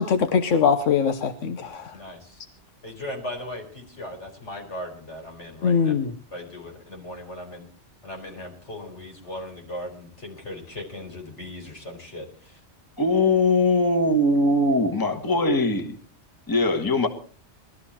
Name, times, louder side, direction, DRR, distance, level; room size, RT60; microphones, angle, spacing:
voice 1, 0.0-2.0 5.6-6.1, left 6 dB, 90° left, 8 dB, 1.3 m, -22 dB
voice 2, 1.9-2.3 2.8-5.9 6.3-7.7 8.0-12.2, left 1 dB, 70° left, 1 dB, 5.0 m, -38 dB
voice 3, 13.0-16.0 16.5-17.1, left 2 dB, 20° left, 6 dB, 1.5 m, -21 dB
20.5 x 13.0 x 4.3 m, 0.42 s
omnidirectional pair, 1.2 m